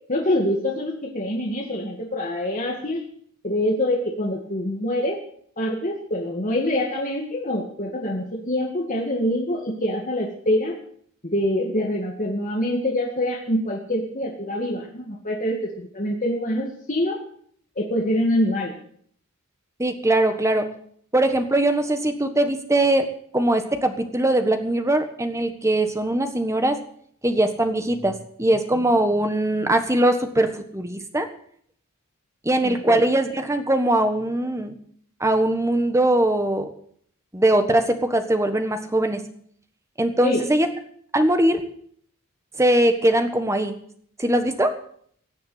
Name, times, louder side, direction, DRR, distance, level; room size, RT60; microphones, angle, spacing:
voice 1, 0.1-3.0 3.4-5.2 5.6-10.8 11.2-17.2 17.8-18.7 32.6-33.0 40.2-40.5, left 1 dB, 35° left, -1 dB, 2.1 m, -25 dB
voice 2, 19.8-20.7 21.1-23.1 23.3-26.8 27.2-31.3 32.4-34.7 35.2-36.7 37.3-39.2 40.0-40.7 41.1-41.6 42.6-43.8 44.2-44.7, right 1 dB, 15° right, 7 dB, 1.4 m, -21 dB
16.5 x 7.1 x 8.5 m, 0.62 s
head